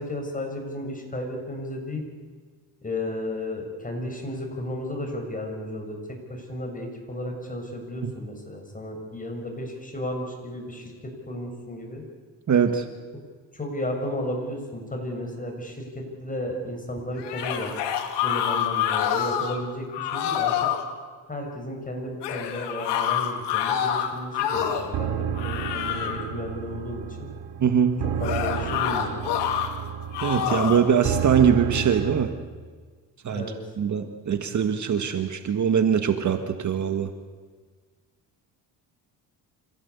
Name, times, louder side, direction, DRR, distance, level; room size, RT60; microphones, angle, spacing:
voice 1, 0.0-2.0 2.8-6.0 6.3-10.9 11.3-12.0 13.5-17.7 18.2-20.6 21.3-27.0 28.0-29.2 33.3-33.6, left 1 dB, 20° left, 2 dB, 6.7 m, -33 dB
voice 2, 12.5-12.8 27.6-28.0 30.2-32.3 33.2-33.4 33.8-37.1, right 7 dB, 45° right, 8 dB, 1.7 m, -22 dB
sound 1, 17.2-19.6 19.9-20.8 22.2-24.9 25.3-26.3 28.2-29.7 30.1-30.9, left 9 dB, 80° left, 2.7 m, -27 dB
sound 2, 24.5-32.3, right 9 dB, 70° right, 2.3 m, -32 dB
26.5 x 16.0 x 8.4 m, 1.5 s
cardioid pair, 90°, 41 cm